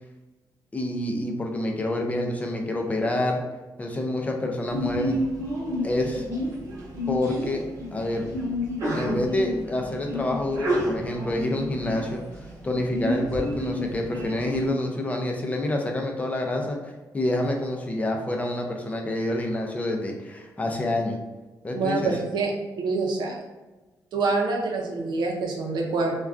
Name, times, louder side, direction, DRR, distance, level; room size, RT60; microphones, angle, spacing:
voice 1, 0.7-3.4 3.8-5.2 5.8-6.3 7.1-7.6 7.9-8.3 8.9-12.2 12.6-21.2 21.6-22.1, left 1 dB, 20° left, 2 dB, 0.4 m, -27 dB
Sneeze, 4.7-14.7, equal, 50° right, 1.0 m, -30 dB
voice 2, 21.7-23.3 24.1-26.1, right 3 dB, 90° right, 0 dB, 0.6 m, -26 dB
3.4 x 2.2 x 2.4 m, 1.2 s
wide cardioid pair, 135°, 7 cm